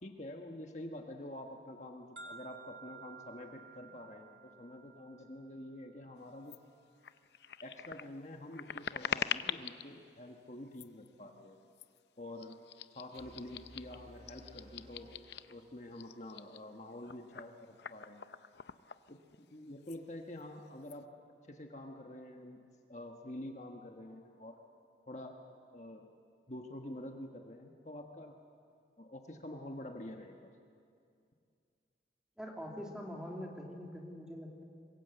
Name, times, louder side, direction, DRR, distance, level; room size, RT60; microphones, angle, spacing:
voice 1, 0.0-6.6 7.6-11.6 12.2-12.6 12.9-15.1 15.5-18.2 19.1-21.1 21.5-22.6 22.9-24.6 25.1-25.4 25.7-26.1 26.5-28.4 29.0-30.5, left 1 dB, 40° left, 3 dB, 1.4 m, -47 dB
sound 1, 2.2-6.1, right 5 dB, 90° right, 2.9 m, -54 dB
sound 2, 6.5-6.6 7.0-9.9 10.7-11.1 11.7-12.0 12.4-15.6 15.9-19.5 19.8-20.0 20.3-21.0, left 7 dB, 70° left, 0.6 m, -43 dB
sound 3, 13.1-16.2, equal, 35° right, 1.5 m, -58 dB
voice 2, 32.4-34.6, equal, 5° right, 0 dB, 2.9 m, -44 dB
25.5 x 21.5 x 7.9 m, 2.3 s
head